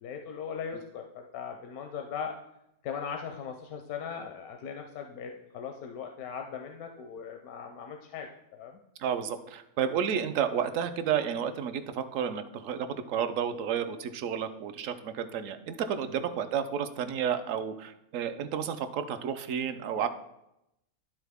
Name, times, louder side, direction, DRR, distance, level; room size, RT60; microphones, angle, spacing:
voice 1, 0.0-2.3 2.8-8.7, left 7 dB, 85° left, 4 dB, 1.1 m, -39 dB
voice 2, 9.0-20.1, right 8 dB, 70° right, 9 dB, 0.9 m, -31 dB
12.0 x 4.0 x 3.5 m, 0.84 s
omnidirectional pair, 1.5 m